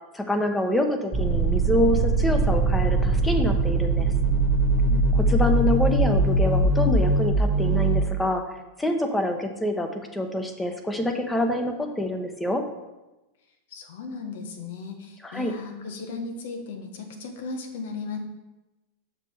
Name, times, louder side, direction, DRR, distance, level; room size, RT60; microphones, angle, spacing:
voice 1, 0.1-4.1 5.3-8.4 8.8-12.6 15.2-15.5, left 1 dB, 10° left, 5 dB, 1.1 m, -26 dB
sound 1, 1.1-8.0, right 2 dB, 25° right, 1.4 m, -21 dB
voice 2, 13.7-18.2, left 4 dB, 70° left, 5 dB, 1.4 m, -36 dB
6.8 x 5.9 x 4.7 m, 1.0 s
hypercardioid pair, 105°, 0 cm